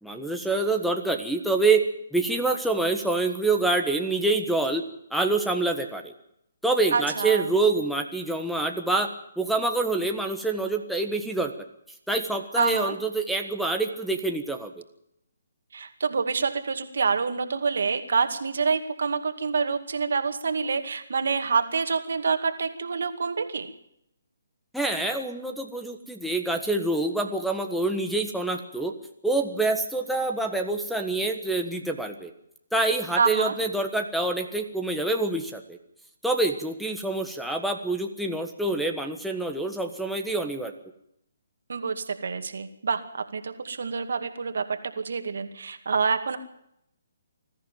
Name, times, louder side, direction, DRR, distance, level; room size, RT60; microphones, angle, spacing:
voice 1, 0.0-1.8 2.1-4.8 5.1-6.1 6.6-9.1 9.4-11.5 12.1-14.7 24.7-28.9 29.2-32.3 32.7-35.8 36.2-40.7, right 2 dB, ahead, 1 dB, 1.4 m, -26 dB
voice 2, 6.9-7.5 12.6-13.0 15.7-23.7 33.2-33.5 41.7-46.4, right 5 dB, 70° right, 8 dB, 2.2 m, -27 dB
21.0 x 14.0 x 9.2 m, 0.76 s
figure-of-eight pair, 145°, 0 cm